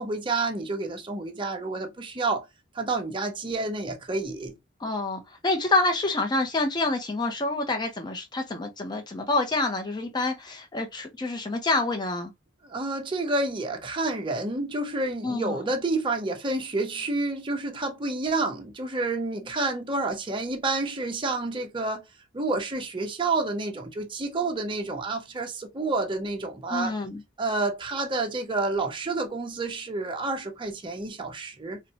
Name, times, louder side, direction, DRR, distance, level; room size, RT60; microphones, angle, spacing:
voice 1, 0.0-2.5 2.7-4.5 12.6-22.0 22.3-26.9 27.4-31.8, right 3 dB, 25° right, 0.7 m, -29 dB
voice 2, 4.8-12.3 15.2-15.5 26.7-27.2, left 2 dB, 20° left, 0.6 m, -27 dB
4.0 x 2.1 x 2.7 m
head